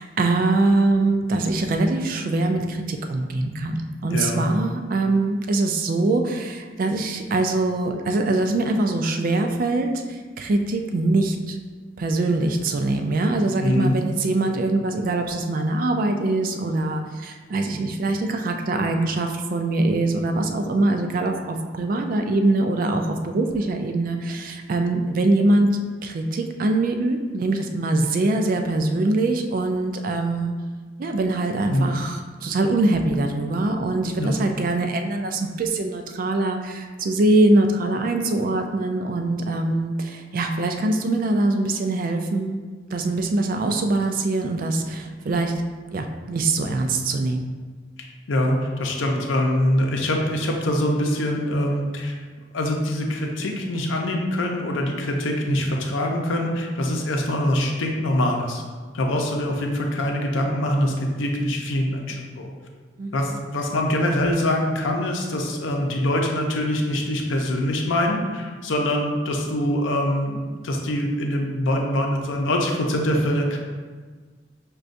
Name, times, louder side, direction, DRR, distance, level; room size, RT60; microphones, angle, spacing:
voice 1, 0.0-11.6 12.0-25.7 26.0-30.5 31.0-42.6 42.9-45.5 45.9-47.5 63.0-63.4, right 2 dB, 45° right, 5 dB, 0.3 m, -23 dB
voice 2, 4.1-4.5 13.6-14.0 31.7-31.9 34.2-34.3 48.3-52.2 52.5-58.6 58.9-62.5 63.1-73.6, left 1 dB, 90° left, 1 dB, 0.6 m, -24 dB
6.3 x 2.3 x 2.5 m, 1.4 s
head